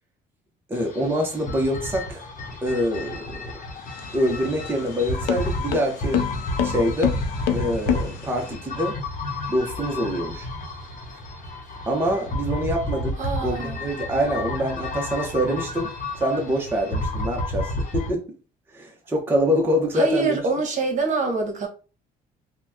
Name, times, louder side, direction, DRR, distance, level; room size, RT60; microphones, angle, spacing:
sound 1, 0.7-18.1, left 2 dB, 50° left, 0.9 m, -31 dB
voice 1, 0.7-2.3 2.6-3.4 4.1-6.2 6.6-7.2 7.5-9.0 9.5-10.5 11.9-18.2 18.7-20.4, equal, 10° right, 0.7 m, -25 dB
sound 2, 3.8-8.5, left 10 dB, 85° left, 0.5 m, -28 dB
voice 2, 13.2-13.9 19.9-21.7, right 3 dB, 45° right, 1.0 m, -25 dB
2.8 x 2.1 x 3.5 m
cardioid pair, 110°, 17 cm